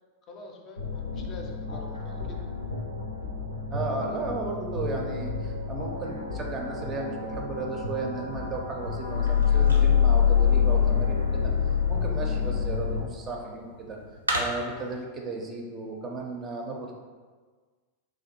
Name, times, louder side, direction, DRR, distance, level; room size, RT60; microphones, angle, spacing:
voice 1, 0.3-2.5, left 3 dB, 35° left, 1 dB, 0.5 m, -45 dB
sound 1, 0.8-13.0, left 7 dB, 80° left, 0.5 m, -26 dB
voice 2, 3.7-16.9, right 3 dB, 25° right, 0 dB, 0.5 m, -35 dB
sound 2, 8.1-14.9, right 1 dB, 80° right, 0.5 m, -38 dB
3.2 x 2.5 x 4.2 m, 1.5 s
figure-of-eight pair, 90°, 0 cm